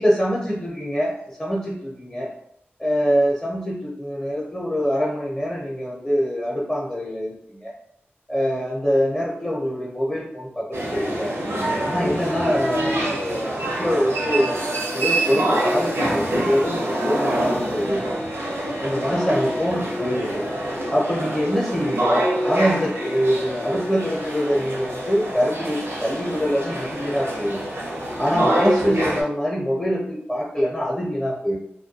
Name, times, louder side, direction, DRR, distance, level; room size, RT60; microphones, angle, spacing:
voice 1, 0.0-2.3 2.8-7.7 8.3-11.3 11.8-14.5 14.9-18.0 18.8-20.4 20.9-27.6 28.2-31.6, equal, 20° left, -4 dB, 0.7 m, -24 dB
sound 1, 10.7-29.2, right 1 dB, 85° right, 0.7 m, -25 dB
2.2 x 2.2 x 2.7 m, 0.73 s
cardioid pair, 50°, 4 cm